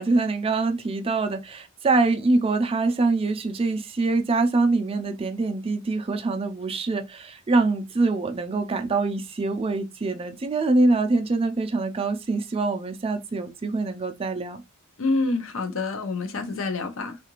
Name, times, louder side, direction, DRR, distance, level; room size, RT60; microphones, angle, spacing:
voice 1, 0.0-14.6, right 3 dB, 25° right, 0.4 m, -24 dB
voice 2, 15.0-17.2, left 3 dB, 70° left, 0.6 m, -27 dB
3.7 x 2.4 x 2.9 m
head